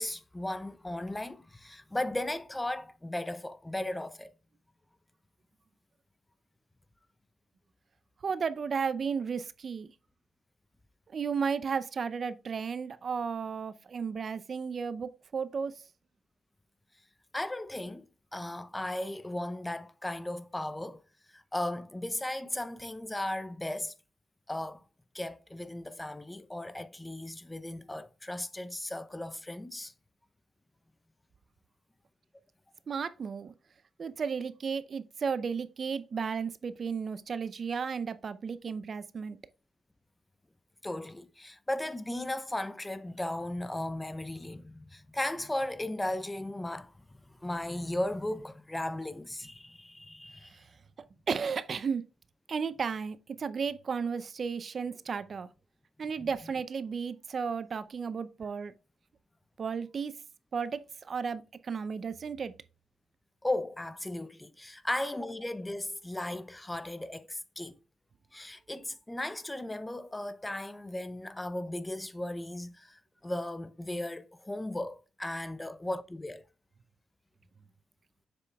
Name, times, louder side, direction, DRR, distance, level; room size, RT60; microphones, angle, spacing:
voice 1, 0.0-4.3 17.3-18.0 18.3-21.0 21.3-23.9 24.5-24.8 25.1-29.9 40.8-50.6 56.2-56.3 63.4-67.8 68.3-76.4, left 1 dB, 15° left, 0.6 m, -36 dB
voice 2, 8.2-9.9 11.1-15.7 32.9-33.5 34.0-39.4 51.3-52.0 52.5-55.5 56.0-58.7 59.6-60.1 60.5-60.8 61.1-62.5, right 6 dB, 55° right, 0.5 m, -33 dB
7.0 x 6.7 x 2.3 m
supercardioid pair, 55°, 0 cm